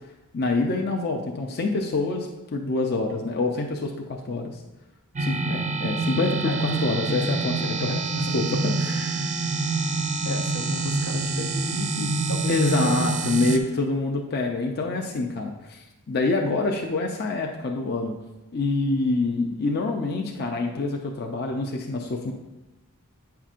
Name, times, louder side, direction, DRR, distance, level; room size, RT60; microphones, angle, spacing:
voice 1, 0.3-4.6 5.2-8.0 8.3-9.3 12.5-15.8 16.1-18.1 18.5-22.3, left 3 dB, 45° left, 1 dB, 0.5 m, -26 dB
sound 1, 5.2-13.6, right 3 dB, 35° right, 0.4 m, -26 dB
voice 2, 6.4-8.4 10.2-13.1, left 2 dB, 75° left, 4 dB, 0.8 m, -34 dB
8.9 x 5.8 x 2.5 m, 1.0 s
head